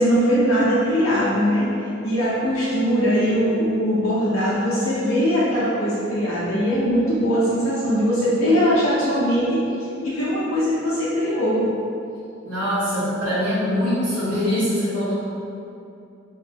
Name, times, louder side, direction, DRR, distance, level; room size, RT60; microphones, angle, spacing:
voice 1, 0.0-11.6, equal, 75° left, -10 dB, 0.7 m, -21 dB
voice 2, 12.4-15.1, equal, 65° right, -17 dB, 1.3 m, -23 dB
3.6 x 3.0 x 2.9 m, 2.6 s
head